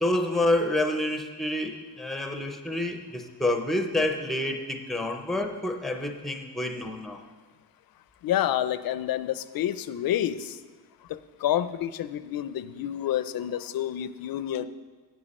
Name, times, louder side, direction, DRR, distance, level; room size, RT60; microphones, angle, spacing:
voice 1, 0.0-7.2, left 1 dB, ahead, 4 dB, 0.5 m, -28 dB
voice 2, 8.2-10.6 11.1-14.7, left 11 dB, 60° left, 14 dB, 0.5 m, -29 dB
10.0 x 7.6 x 4.2 m, 1.3 s
wide cardioid pair, 170°, 40 cm